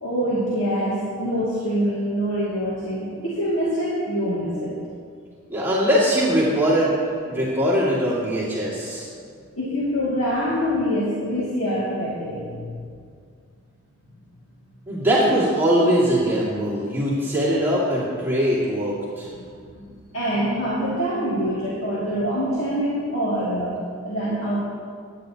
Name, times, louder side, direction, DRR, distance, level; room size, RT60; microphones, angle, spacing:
voice 1, 0.0-4.8 9.5-12.8 19.3-19.4 19.7-24.6, equal, 60° left, -7 dB, 2.1 m, -25 dB
voice 2, 5.5-6.9 7.3-9.1 14.9-19.3, equal, 10° right, -8 dB, 2.0 m, -21 dB
16.0 x 10.5 x 2.8 m, 2.2 s
head